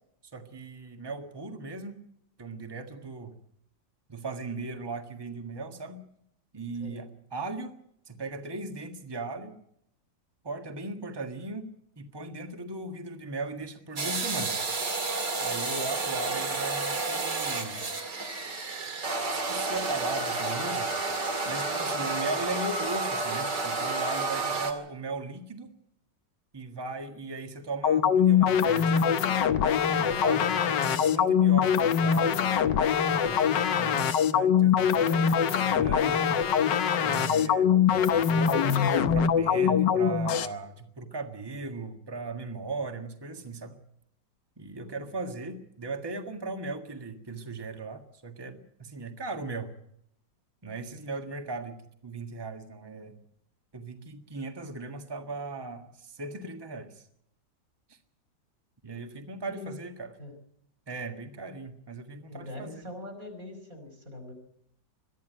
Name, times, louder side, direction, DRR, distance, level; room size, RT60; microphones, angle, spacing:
voice 1, 0.3-1.9 2.4-3.4 4.1-6.0 6.5-7.8 8.1-9.5 10.4-11.7 12.0-14.6 15.4-17.9 19.3-20.9 21.4-25.7 26.5-29.1 29.8-32.4 33.1-36.4 36.9-37.8 38.3-43.7 44.6-49.7 50.6-53.2 53.7-57.0 57.9-58.0 58.8-60.1 60.9-62.7, right 3 dB, 15° right, 5 dB, 1.5 m, -38 dB
sound 1, 14.0-24.7, right 3 dB, 70° right, 3.0 m, -30 dB
sound 2, 27.8-40.5, left 8 dB, 75° left, 1.6 m, -23 dB
voice 2, 59.5-59.8 60.2-60.3 62.3-64.3, left 2 dB, 50° right, 4 dB, 5.7 m, -42 dB
22.5 x 13.5 x 9.1 m, 0.74 s
omnidirectional pair, 1.9 m